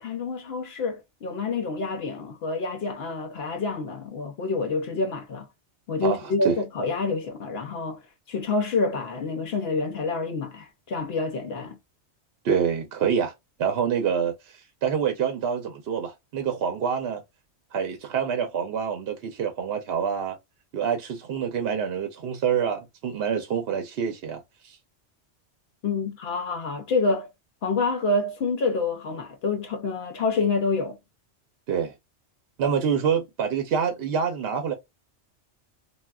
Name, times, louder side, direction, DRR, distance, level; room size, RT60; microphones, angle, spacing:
voice 1, 0.0-5.5 5.9-8.0 8.3-11.8 25.8-27.3 27.6-31.0, left 3 dB, 65° left, 0.8 m, -27 dB
voice 2, 6.0-6.6 12.4-13.3 13.6-17.2 17.7-20.4 20.7-24.8 31.7-31.9 32.6-34.7, right 7 dB, 65° right, 0.8 m, -26 dB
3.4 x 2.3 x 2.2 m
omnidirectional pair, 1.2 m